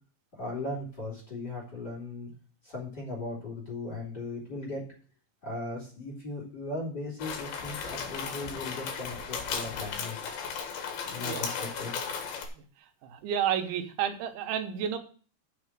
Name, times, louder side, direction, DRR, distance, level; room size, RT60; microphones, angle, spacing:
voice 1, 0.3-2.3 2.6-4.8 5.4-10.2 11.1-11.9, left 2 dB, 25° left, -3 dB, 2.9 m, -37 dB
sound 1, 7.2-12.5, left 6 dB, 65° left, 3.0 m, -36 dB
voice 2, 13.0-15.0, right 9 dB, 85° right, 6 dB, 3.4 m, -30 dB
7.4 x 6.3 x 7.4 m, 0.40 s
omnidirectional pair, 5.3 m